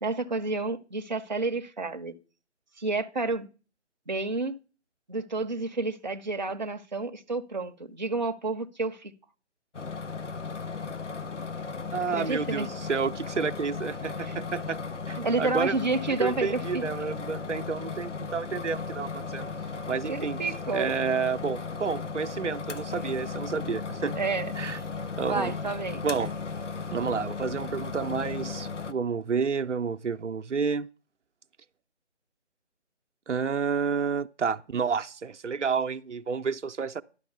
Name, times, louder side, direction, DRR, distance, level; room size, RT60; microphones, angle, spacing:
voice 1, 0.0-2.1 2.8-3.5 4.1-4.6 5.1-9.1 12.1-12.7 14.2-14.4 15.2-16.8 19.9-20.9 24.2-24.8 25.3-26.0, right 3 dB, 40° right, 0.5 m, -30 dB
sound 1, 9.7-28.9, left 4 dB, 85° left, 0.8 m, -36 dB
voice 2, 11.9-14.8 15.1-15.7 16.2-19.5 19.9-20.4 20.7-24.1 24.6-24.8 25.2-25.5 26.0-26.3 26.9-30.9 33.3-37.0, right 5 dB, 80° right, 0.6 m, -30 dB
11.5 x 4.8 x 6.8 m
figure-of-eight pair, 160°, 35 cm